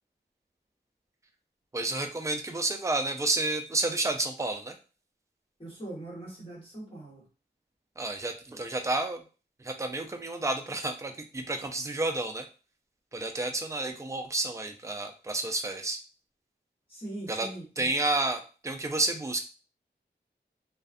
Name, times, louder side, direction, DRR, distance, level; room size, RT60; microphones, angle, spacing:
voice 1, 1.7-4.8 8.0-9.2 9.6-12.5 13.1-16.0 17.3-17.5 17.8-19.4, right 2 dB, 15° right, 4 dB, 0.4 m, -30 dB
voice 2, 5.6-7.3 16.9-17.9, right 1 dB, 30° left, -5 dB, 1.4 m, -41 dB
2.4 x 2.3 x 2.5 m, 0.35 s
wide cardioid pair, 75°, 19 cm